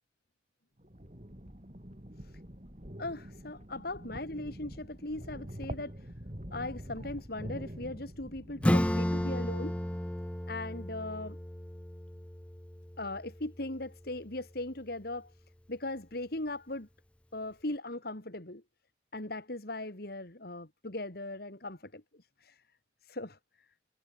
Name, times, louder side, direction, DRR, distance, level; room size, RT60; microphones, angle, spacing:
sound 1, 0.8-10.0, equal, 40° right, 4.0 m, -45 dB
voice 1, 3.0-6.1 6.5-9.8 10.5-11.4 13.0-15.3 15.7-16.9 17.3-18.6 19.1-22.0 22.4-22.6 23.0-23.4, left 2 dB, 55° left, 2.7 m, -39 dB
Acoustic guitar / Strum, 8.6-13.9, left 1 dB, 5° left, 0.5 m, -33 dB
head